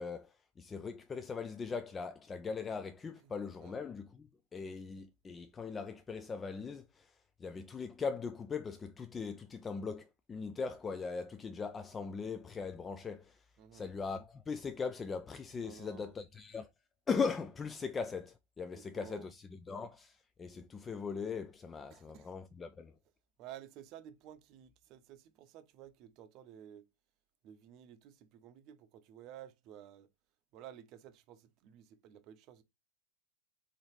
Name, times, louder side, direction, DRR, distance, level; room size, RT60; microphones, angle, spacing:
voice 1, 0.0-13.5 13.7-16.7 17.1-22.9, left 5 dB, 15° left, 0.3 m, -40 dB
voice 2, 13.6-13.9 15.6-16.1 18.7-19.3 21.9-22.3 23.4-26.9 27.4-30.1 30.5-32.6, right 11 dB, 40° right, 0.7 m, -53 dB
3.9 x 3.9 x 3.1 m
figure-of-eight pair, 90°, 0 cm